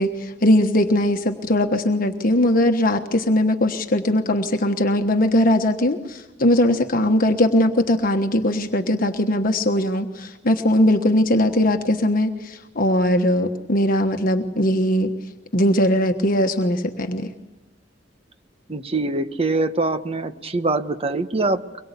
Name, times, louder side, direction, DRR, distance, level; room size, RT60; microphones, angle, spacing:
voice 1, 0.0-15.1 15.5-17.3, left 1 dB, 50° left, 5 dB, 1.3 m, -20 dB
voice 2, 18.7-21.8, right 2 dB, 30° right, 9 dB, 1.2 m, -24 dB
24.0 x 22.0 x 8.4 m, 1.1 s
head